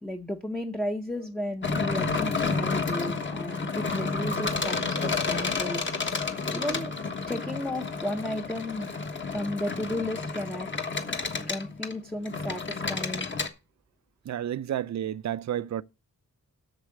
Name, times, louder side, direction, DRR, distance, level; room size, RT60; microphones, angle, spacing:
voice 1, 0.0-5.8 6.5-6.9 7.3-8.9 9.3-10.7 11.5-13.3, left 1 dB, ahead, 0.7 m, -33 dB
Anchor chain, 1.6-13.5, left 4 dB, 30° left, 1.3 m, -30 dB
voice 2, 14.3-15.8, right 10 dB, 50° right, 0.5 m, -31 dB
8.0 x 6.8 x 7.5 m
wide cardioid pair, 145°, 37 cm